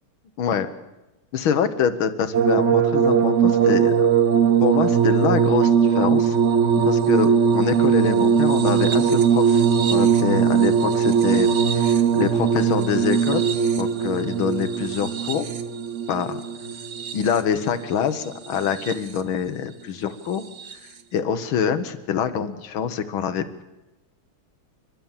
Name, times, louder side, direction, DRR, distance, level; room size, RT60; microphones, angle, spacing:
voice 1, 1.3-4.1 4.6-6.4 6.8-13.4 13.8-15.5 16.1-16.4 17.1-20.4 21.1-23.6, left 7 dB, 80° left, 10 dB, 2.0 m, -25 dB
sound 1, 2.3-17.6 18.5-19.2 20.6-20.7, right 7 dB, 45° right, 1.0 m, -20 dB
29.0 x 12.0 x 7.4 m, 1.0 s
omnidirectional pair, 2.2 m